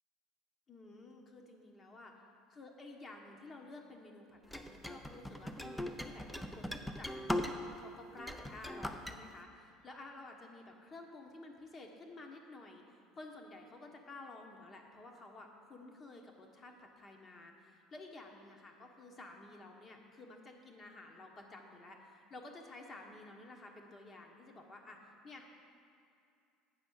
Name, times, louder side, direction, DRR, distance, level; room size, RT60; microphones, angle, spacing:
voice 1, 0.7-2.1 2.5-25.5, left 2 dB, 30° left, 2 dB, 1.2 m, -52 dB
sound 1, 4.5-7.8 8.2-9.2, left 1 dB, 5° left, 0.6 m, -39 dB
8.1 x 5.3 x 6.4 m, 2.5 s
hypercardioid pair, 70°, 0 cm